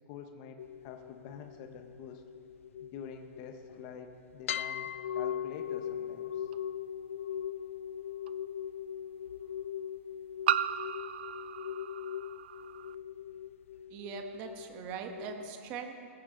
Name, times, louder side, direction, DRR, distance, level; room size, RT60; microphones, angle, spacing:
voice 1, 0.1-2.2 2.8-6.5, left 7 dB, 30° left, 5 dB, 0.8 m, -47 dB
Pan Lid, 0.6-4.0 4.5-15.5, left 9 dB, 70° left, 0.4 m, -40 dB
sound 1, 6.5-6.6 8.3-8.4 10.5-12.9, right 11 dB, 50° right, 0.4 m, -34 dB
voice 2, 13.9-16.1, right 7 dB, 25° right, 4 dB, 1.2 m, -41 dB
19.5 x 15.5 x 3.8 m, 2.5 s
hypercardioid pair, 170°, 7 cm